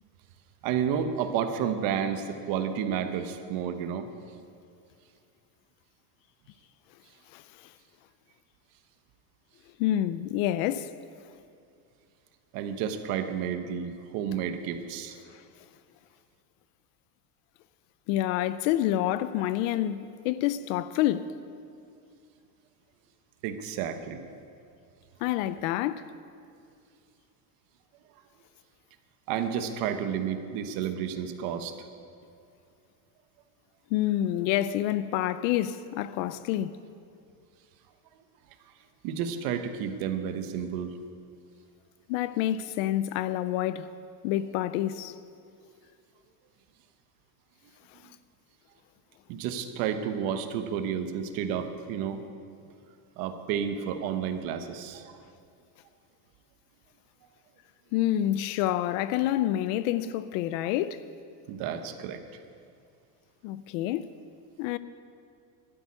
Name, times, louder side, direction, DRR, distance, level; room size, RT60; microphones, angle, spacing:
voice 1, 0.6-4.1 12.5-15.2 23.4-24.2 29.3-31.7 39.0-40.9 49.3-52.2 53.2-55.2 61.5-62.2, right 8 dB, 45° right, 1.0 m, -31 dB
voice 2, 9.8-10.9 15.3-15.4 18.1-21.3 25.2-26.1 33.9-36.8 42.1-43.9 44.2-45.1 57.9-61.0 63.4-64.0 64.6-64.8, left 13 dB, 55° left, 0.5 m, -28 dB
12.5 x 8.9 x 9.7 m
cardioid pair, 170°, 48 cm